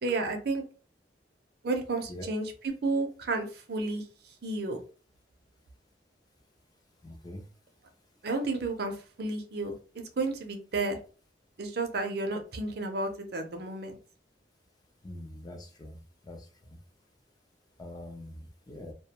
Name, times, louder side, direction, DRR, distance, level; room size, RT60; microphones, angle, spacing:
voice 1, 0.0-0.6 1.6-4.0 4.4-4.8 8.2-8.9 9.2-11.0 11.6-14.0, right 3 dB, 60° right, 5 dB, 0.5 m, -32 dB
voice 2, 7.0-7.5 15.0-16.0 16.2-16.4 17.8-18.9, left 1 dB, 20° left, 3 dB, 0.4 m, -43 dB
2.2 x 2.1 x 2.8 m, 0.36 s
head